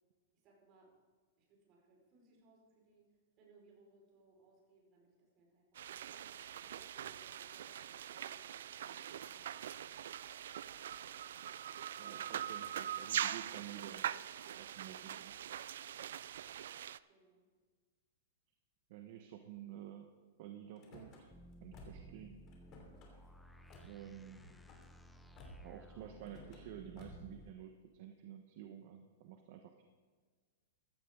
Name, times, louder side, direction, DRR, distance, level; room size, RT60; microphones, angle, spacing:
voice 1, 0.3-0.9 1.4-6.3 6.6-9.6 17.1-17.5 24.1-24.6, right 3 dB, 30° right, -2 dB, 5.0 m, -67 dB
sound 1, 5.8-17.0, right 10 dB, 75° right, 0.4 m, -43 dB
voice 2, 12.0-14.1 14.6-15.4 18.9-20.1 20.4-21.3 21.6-22.4 23.8-24.5 25.6-29.8, right 10 dB, 50° right, 5 dB, 1.1 m, -51 dB
Car / Slam, 20.8-21.2 21.7-22.2 22.5-23.1 23.7-23.9 24.3-24.8 25.4-25.8 26.2-26.6 27.0-27.3, left 1 dB, 30° left, 3.0 m, -55 dB
sound 2, 21.3-27.5, equal, 5° left, 0.6 m, -57 dB
15.5 x 13.0 x 3.8 m, 1.5 s
supercardioid pair, 155°, 0 cm